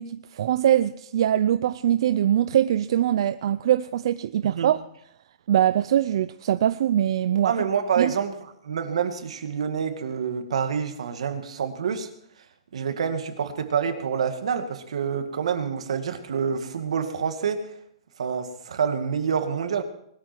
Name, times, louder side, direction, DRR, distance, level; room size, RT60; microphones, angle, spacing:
voice 1, 0.0-4.8 5.5-7.5 8.0-8.1, right 11 dB, 55° right, 0.5 m, -22 dB
voice 2, 7.4-8.3 8.6-12.1 12.7-17.7 18.2-19.8, right 7 dB, 80° right, 2.2 m, -27 dB
20.5 x 13.0 x 4.5 m
hypercardioid pair, 170°, 3 cm